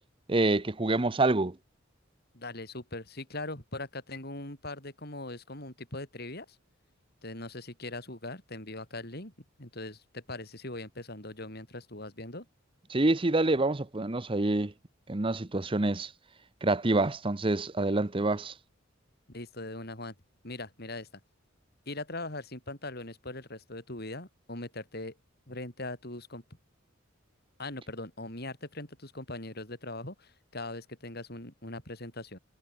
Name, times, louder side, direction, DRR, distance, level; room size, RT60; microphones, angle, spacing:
voice 1, 0.3-1.5 12.9-14.7 15.1-16.1 16.6-18.5, right 2 dB, 25° right, 0.8 m, -27 dB
voice 2, 2.3-6.6 7.2-9.3 9.6-12.5 19.3-20.2 20.4-21.1 21.9-25.2 25.5-26.4 27.6-32.4, left 2 dB, 50° left, 7.2 m, -40 dB
head